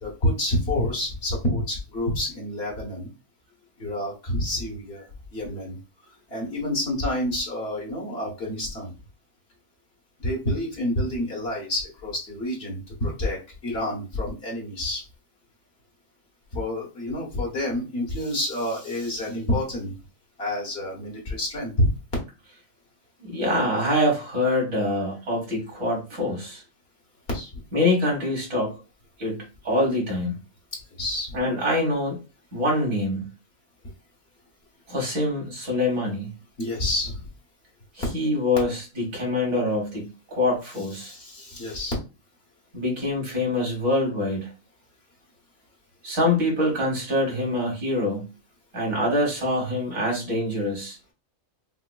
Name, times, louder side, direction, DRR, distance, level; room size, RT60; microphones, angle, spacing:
voice 1, 0.0-3.1 3.8-5.8 6.3-8.9 10.2-15.0 16.5-19.9 20.4-21.9 27.3-27.6 31.0-31.4 36.6-37.3 41.0-41.9, left 1 dB, 50° left, -3 dB, 1.5 m, -28 dB
voice 2, 23.2-26.6 27.7-28.7 29.2-30.4 31.3-32.2 32.5-33.2 34.9-36.3 38.0-41.1 42.7-44.5 46.0-48.3 48.7-51.0, left 1 dB, 80° right, -2 dB, 2.2 m, -25 dB
5.6 x 2.1 x 2.3 m, 0.30 s
omnidirectional pair, 1.4 m